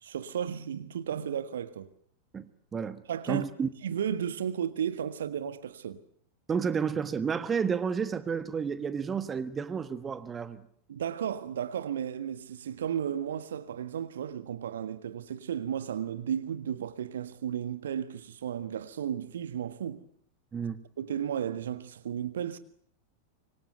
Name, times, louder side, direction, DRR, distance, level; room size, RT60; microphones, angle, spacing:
voice 1, 0.0-1.9 3.1-3.4 3.8-6.0 10.9-20.0 21.0-22.6, right 9 dB, 65° right, 1.6 m, -34 dB
voice 2, 2.3-3.0 3.3-3.7 6.5-10.6 20.5-20.8, right 6 dB, 20° right, 1.5 m, -31 dB
26.0 x 24.0 x 8.0 m
figure-of-eight pair, 90°, 0 cm